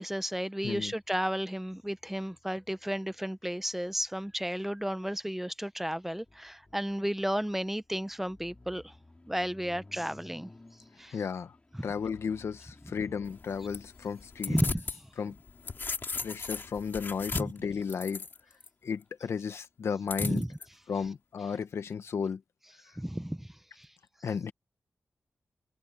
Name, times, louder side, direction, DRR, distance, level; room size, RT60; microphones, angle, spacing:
voice 1, 0.0-8.9 9.3-10.5 11.0-11.1 11.7-11.9 14.5-14.8 17.3-17.5 20.2-20.5 23.0-23.5 23.8-23.9, equal, 5° right, 0.8 m, -33 dB
sound 1, 0.6-17.7, left 2 dB, 25° left, 5.8 m, -58 dB
voice 2, 11.1-11.5 11.8-14.6 15.2-15.4 16.2-18.3 18.8-20.4 20.9-22.4 24.2-24.5, left 6 dB, 80° left, 1.4 m, -34 dB
sound 2, 13.2-15.0 15.4-18.7 20.1-20.6, left 4 dB, 50° left, 3.2 m, -37 dB
wide cardioid pair, 80°, 5 cm